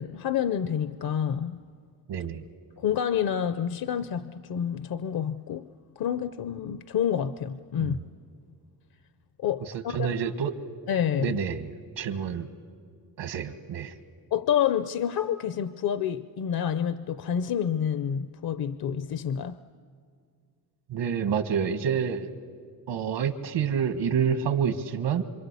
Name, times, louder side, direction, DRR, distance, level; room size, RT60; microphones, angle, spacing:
voice 1, 0.0-1.6 2.8-5.7 6.0-8.0 9.4-10.2 10.9-11.4 14.3-19.6, left 9 dB, 60° left, 0.7 m, -28 dB
voice 2, 2.1-2.4 7.8-8.0 9.6-10.5 11.2-11.7 12.0-12.5 13.2-13.9 20.9-22.3 22.9-25.2, right 7 dB, 80° right, 1.8 m, -28 dB
27.0 x 26.0 x 8.3 m
cardioid pair, 120°, 42 cm